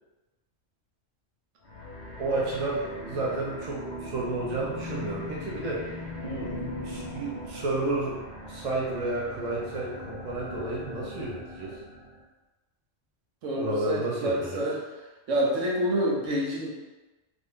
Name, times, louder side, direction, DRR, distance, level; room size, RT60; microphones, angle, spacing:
sound 1, 1.6-12.2, left 1 dB, 50° left, 0.7 m, -40 dB
voice 1, 2.2-8.2 8.5-11.8 13.6-14.6, right 2 dB, 40° right, -4 dB, 0.7 m, -31 dB
voice 2, 13.4-14.8 15.3-16.7, right 1 dB, 80° right, -3 dB, 1.0 m, -27 dB
2.6 x 2.5 x 3.5 m, 1.1 s
omnidirectional pair, 1.2 m